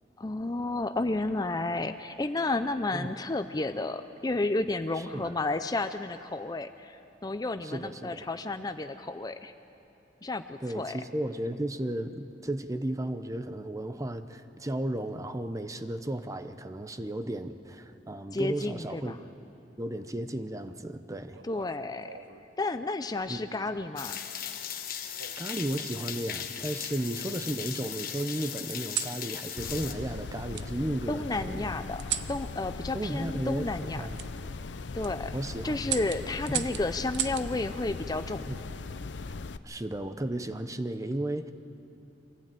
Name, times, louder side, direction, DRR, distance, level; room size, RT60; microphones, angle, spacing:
voice 1, 0.2-9.5 10.2-11.0 18.3-19.2 21.4-22.1 22.6-24.2 31.1-32.0 32.3-34.1 34.9-35.3 35.6-38.5, left 2 dB, 20° left, 10 dB, 0.5 m, -32 dB
voice 2, 7.6-8.2 10.6-19.2 19.8-21.4 23.3-23.4 25.4-31.7 32.9-34.2 35.3-35.7 36.5-36.7 38.5-38.6 39.6-41.5, right 1 dB, 20° right, 10 dB, 0.7 m, -34 dB
sound 1, 21.3-22.5 23.5-23.9 25.2-25.9 26.6-27.5 28.7-29.2 30.5-30.7 32.0-32.4 34.1-34.3 34.8-35.1 35.8-37.5 39.0-39.4, right 10 dB, 75° right, 0.8 m, -37 dB
sound 2, 24.0-29.9, left 9 dB, 55° left, 1.3 m, -37 dB
sound 3, 29.6-39.6, left 3 dB, 80° left, 0.6 m, -39 dB
24.0 x 15.5 x 9.1 m, 2.8 s
head